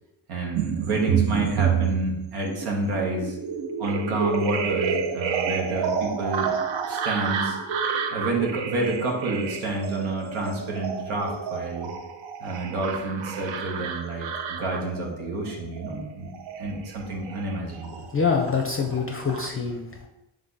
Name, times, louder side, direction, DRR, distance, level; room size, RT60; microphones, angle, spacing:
voice 1, 0.3-3.3 3.8-6.5 6.8-7.6 8.1-11.9 12.4-16.3 16.6-18.1, right 2 dB, 80° right, 0 dB, 1.1 m, -29 dB
sound 1, 0.6-18.3 18.6-19.5, right 6 dB, 65° right, 0.6 m, -29 dB
voice 2, 18.1-20.1, left 5 dB, 25° left, 2 dB, 0.5 m, -25 dB
3.3 x 3.3 x 3.9 m, 0.89 s
supercardioid pair, 50°, 49 cm